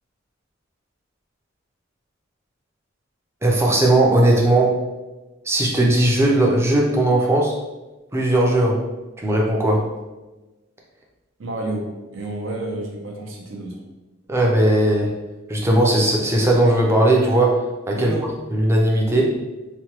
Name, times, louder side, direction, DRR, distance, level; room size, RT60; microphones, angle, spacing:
voice 1, 3.4-4.8 5.4-7.6 8.1-8.8 9.2-9.9 14.3-15.2 15.5-18.1 18.5-19.4, right 1 dB, 15° right, -1 dB, 0.4 m, -18 dB
voice 2, 11.4-11.9 12.1-13.8 17.9-18.3, right 2 dB, 70° right, 0 dB, 0.6 m, -30 dB
3.0 x 2.2 x 2.9 m, 1.1 s
head